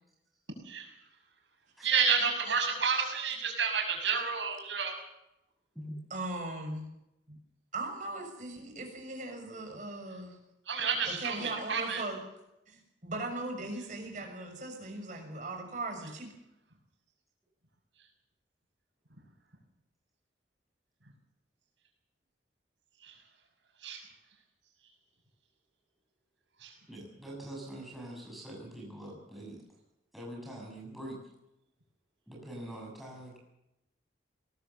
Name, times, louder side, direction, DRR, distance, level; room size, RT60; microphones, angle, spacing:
voice 1, 1.8-4.9 10.7-12.0 23.0-23.2 23.8-24.0 26.6-26.7, right 5 dB, 85° right, 2 dB, 6.9 m, -30 dB
voice 2, 6.1-6.9 7.3-7.4 7.7-10.4 11.0-12.2 12.7-16.3, right 2 dB, 45° right, 3 dB, 6.5 m, -39 dB
voice 3, 26.9-29.6 30.1-31.2 32.3-33.4, right 1 dB, ahead, -3 dB, 7.1 m, -44 dB
22.5 x 19.0 x 7.1 m, 0.87 s
head